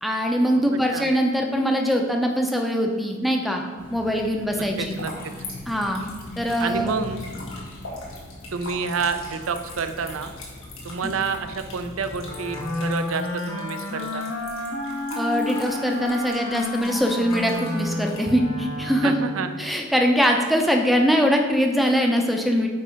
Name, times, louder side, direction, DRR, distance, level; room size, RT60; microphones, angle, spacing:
voice 1, 0.0-3.6 3.9-5.0 5.7-6.0 6.4-6.9 11.0-11.1 15.2-19.3 19.6-22.7, equal, ahead, 2 dB, 0.6 m, -22 dB
sound 1, 3.8-12.7, left 2 dB, 40° left, 1.0 m, -41 dB
voice 2, 4.6-5.3 6.6-7.2 8.5-10.3 10.8-14.3 19.0-19.5, right 5 dB, 80° right, 9 dB, 0.5 m, -29 dB
sound 2, 4.7-18.2, left 2 dB, 85° left, 1.7 m, -42 dB
Wind instrument woodwind instrument, 12.2-19.6, left 2 dB, 70° left, 1.2 m, -31 dB
8.6 x 3.3 x 5.1 m, 1.6 s
head